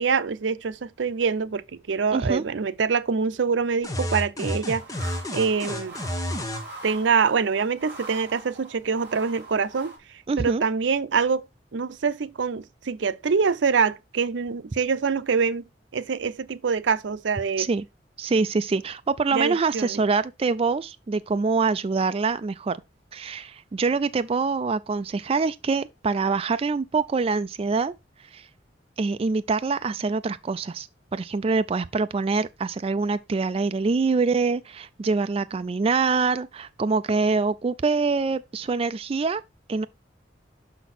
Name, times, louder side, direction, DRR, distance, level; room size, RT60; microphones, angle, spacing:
voice 1, 0.0-4.8 5.3-5.9 6.8-9.9 10.4-11.5 11.7-15.6 15.9-17.7 19.3-20.0, right 5 dB, 85° right, 0.5 m, -25 dB
voice 2, 2.1-2.4 10.3-10.6 17.6-17.8 18.2-22.8 23.1-27.9 28.3-28.4 29.0-30.9 31.1-39.4 39.7-39.9, right 4 dB, 30° right, 0.4 m, -25 dB
sound 1, 3.8-6.7, left 1 dB, 20° left, 1.2 m, -30 dB
sound 2, 4.7-10.0, right 3 dB, 15° right, 4.4 m, -43 dB
6.0 x 6.0 x 4.2 m
head